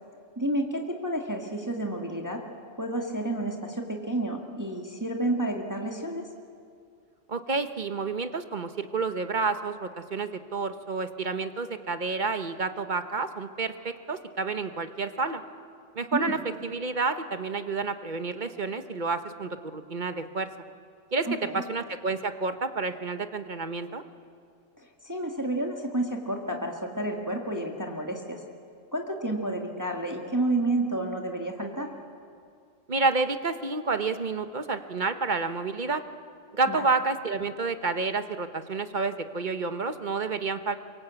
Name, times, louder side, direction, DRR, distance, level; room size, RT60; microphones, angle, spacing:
voice 1, 0.4-2.4 2.8-6.2 16.1-16.4 21.3-21.6 24.8-28.4 28.9-31.9 36.7-36.8, right 1 dB, 15° right, 1 dB, 1.8 m, -30 dB
voice 2, 7.3-15.4 15.9-20.5 21.1-24.0 32.9-36.0 36.5-40.8, right 4 dB, 40° right, 9 dB, 1.1 m, -29 dB
25.0 x 23.0 x 8.3 m, 2.3 s
omnidirectional pair, 1.3 m